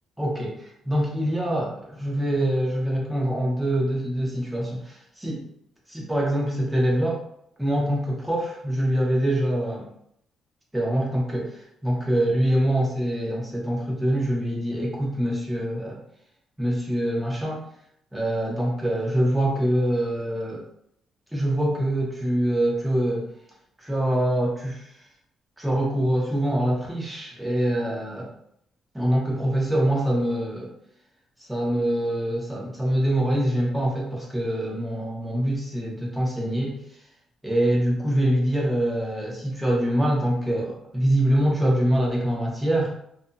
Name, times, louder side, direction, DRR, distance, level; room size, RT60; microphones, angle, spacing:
voice 1, 0.2-5.4 5.9-7.2 7.6-9.9 10.7-16.0 16.6-17.6 18.1-20.6 21.3-23.3 23.8-24.8 25.6-28.3 28.9-30.7 31.5-36.7 37.4-42.9, right 1 dB, 5° right, -3 dB, 0.9 m, -24 dB
2.6 x 2.6 x 2.3 m, 0.71 s
cardioid pair, 90°, 0 cm